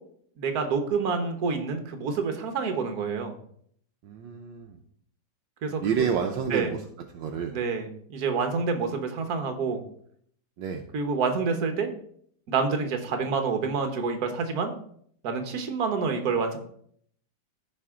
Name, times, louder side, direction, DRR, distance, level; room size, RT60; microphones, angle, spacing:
voice 1, 0.4-3.3 5.6-6.0 6.5-6.7 7.5-9.8 10.9-11.9 12.5-14.7 15.2-16.6, right 5 dB, 55° right, 5 dB, 1.5 m, -28 dB
voice 2, 4.0-4.8 5.8-6.8 7.1-7.6 10.6-10.8, right 7 dB, 75° right, 3 dB, 1.4 m, -29 dB
14.0 x 5.2 x 3.7 m, 0.65 s
omnidirectional pair, 2.1 m